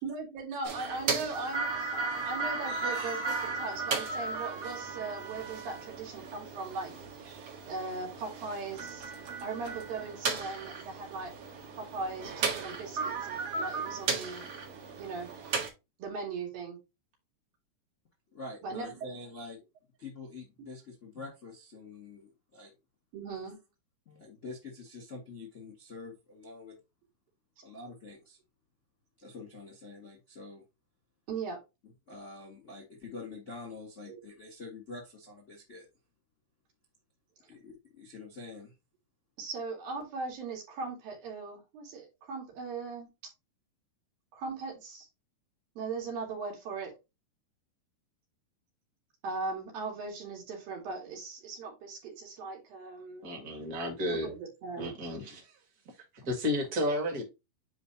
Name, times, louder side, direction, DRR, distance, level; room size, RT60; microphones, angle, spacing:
voice 1, 0.0-7.0 7.7-9.1 9.4-11.3 11.7-14.4 15.0-15.3 16.0-16.8 18.6-19.1 23.1-23.6 31.3-31.6 34.1-34.2 39.4-43.1 44.3-45.1 45.8-46.9 49.2-53.3 54.1-54.9, right 4 dB, 80° right, 4.2 m, -39 dB
sound 1, 0.6-15.7, right 4 dB, 50° right, 2.2 m, -35 dB
voice 2, 18.3-19.6 20.0-22.7 24.0-26.8 27.6-28.4 29.2-30.6 32.1-35.9 37.5-38.7, left 3 dB, 40° left, 1.0 m, -46 dB
voice 3, 53.2-54.3 54.8-55.6 56.3-57.2, left 1 dB, 30° right, 1.9 m, -32 dB
9.8 x 3.5 x 2.8 m
omnidirectional pair, 4.0 m